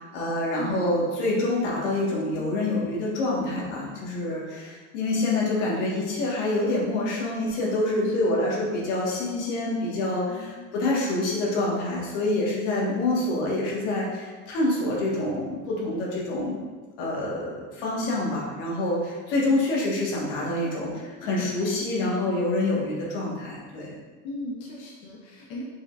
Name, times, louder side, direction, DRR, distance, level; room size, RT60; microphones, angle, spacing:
voice 1, 0.0-16.6 17.0-23.9, left 2 dB, 90° left, -4 dB, 1.4 m, -26 dB
voice 2, 0.6-0.9 8.0-8.1 10.3-10.8 24.2-25.6, left 2 dB, 60° left, -3 dB, 0.8 m, -37 dB
5.0 x 3.6 x 2.4 m, 1.3 s
supercardioid pair, 125°, 35 cm